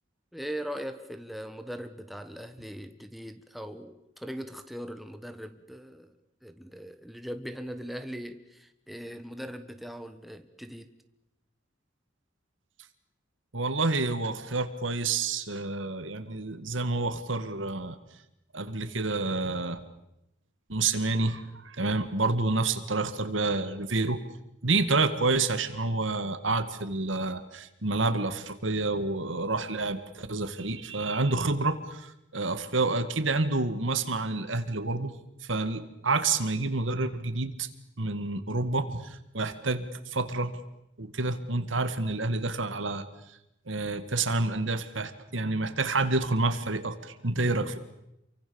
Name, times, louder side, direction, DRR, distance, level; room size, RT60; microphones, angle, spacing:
voice 1, 0.3-6.1 6.4-10.9, equal, ahead, 8 dB, 1.4 m, -40 dB
voice 2, 13.5-18.0 18.5-19.8 20.7-24.2 24.6-35.1 35.4-37.7 38.0-40.6 41.0-43.0 43.7-47.8, right 3 dB, 80° right, 11 dB, 2.0 m, -29 dB
28.5 x 24.0 x 7.1 m, 0.85 s
head